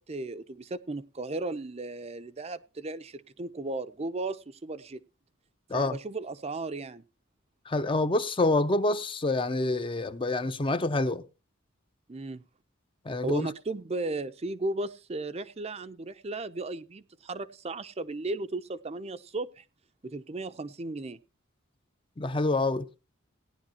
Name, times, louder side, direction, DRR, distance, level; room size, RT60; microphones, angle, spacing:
voice 1, 0.0-5.0 5.7-7.0 12.1-12.4 13.2-19.6 20.0-21.2, right 2 dB, 30° right, 0.5 m, -35 dB
voice 2, 7.7-11.2 13.1-13.5 22.2-22.9, left 2 dB, 25° left, 0.6 m, -27 dB
17.5 x 10.5 x 2.8 m
head